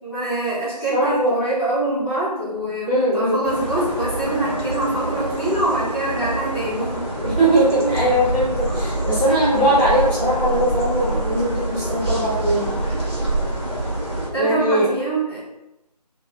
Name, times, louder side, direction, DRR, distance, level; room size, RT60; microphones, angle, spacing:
voice 1, 0.0-7.1 14.3-15.4, right 2 dB, 5° right, -18 dB, 2.0 m, -24 dB
voice 2, 0.9-1.4 2.8-3.4 7.2-12.9 14.4-14.9, right 1 dB, 15° left, -10 dB, 1.8 m, -20 dB
sound 1, 3.4-14.3, right 1 dB, 35° right, 1.8 m, -26 dB
6.0 x 3.0 x 5.2 m, 0.92 s
figure-of-eight pair, 160°, 21 cm